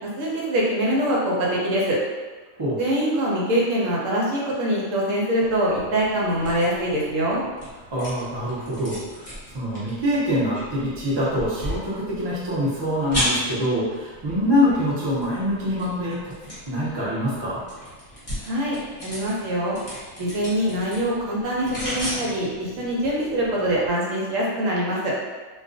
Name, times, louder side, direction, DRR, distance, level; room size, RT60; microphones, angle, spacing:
voice 1, 0.0-2.0 2.8-7.4 18.4-19.8 20.2-25.1, right 1 dB, 75° right, -4 dB, 1.0 m, -24 dB
sound 1, 5.3-23.9, equal, 30° left, 0.9 m, -35 dB
voice 2, 7.9-9.3 9.5-16.2 16.7-17.6, equal, 30° right, -8 dB, 0.5 m, -24 dB
2.4 x 2.2 x 2.5 m, 1.4 s
omnidirectional pair, 1.4 m